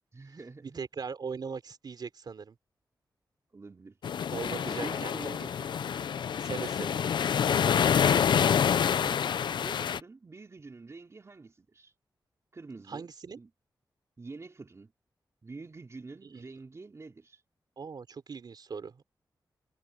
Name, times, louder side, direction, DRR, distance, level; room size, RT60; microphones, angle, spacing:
voice 1, 0.1-0.8 3.5-4.0 4.4-5.8 9.0-9.2 9.6-11.9 12.5-13.5 14.2-14.9 15.4-17.4, right 3 dB, 40° right, 3.5 m, -47 dB
voice 2, 0.6-2.6 4.3-5.2 6.4-7.0 12.9-13.4 16.3-16.4 17.8-19.0, right 5 dB, 65° right, 4.1 m, -39 dB
sound 1, 4.0-10.0, left 8 dB, 85° left, 0.6 m, -27 dB
wide cardioid pair, 85°, 8 cm